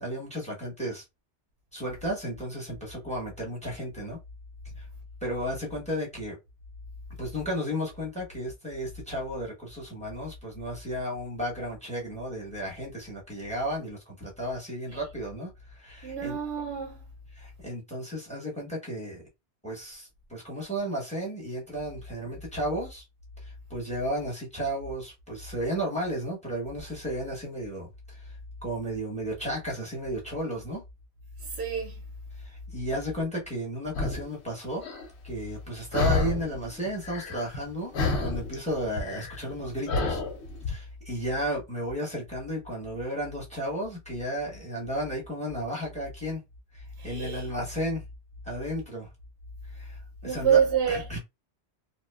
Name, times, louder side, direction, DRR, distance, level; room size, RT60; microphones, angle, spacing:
voice 1, 0.0-1.0 1.7-4.2 4.8-4.9 5.2-6.4 7.2-16.4 17.4-19.2 19.6-23.0 23.4-28.3 28.6-30.8 32.4-34.8 35.2-37.9 38.2-40.2 40.7-46.4 46.7-48.0 48.4-49.1 49.7-50.6 50.9-51.2, equal, 5° left, 0.8 m, -33 dB
voice 2, 16.0-17.0 31.4-32.0 47.0-47.5 50.2-51.1, right 7 dB, 85° right, 0.9 m, -27 dB
sound 1, 33.9-34.3 34.8-35.1 35.9-36.6 36.8-37.7 37.9-40.7, left 3 dB, 85° left, 0.9 m, -29 dB
2.8 x 2.2 x 2.2 m
omnidirectional pair, 1.1 m